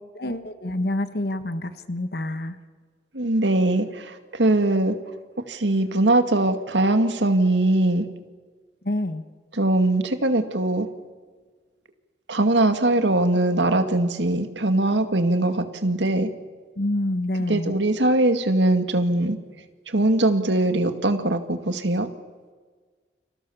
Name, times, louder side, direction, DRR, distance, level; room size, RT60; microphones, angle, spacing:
voice 1, 0.1-2.5 8.8-9.2 16.8-17.7, left 1 dB, 60° left, 10 dB, 1.5 m, -27 dB
voice 2, 3.1-5.0 5.5-8.1 9.5-10.9 12.3-16.3 17.5-19.4 19.9-22.1, right 2 dB, 85° right, 8 dB, 2.2 m, -21 dB
29.5 x 26.5 x 7.2 m, 1.5 s
head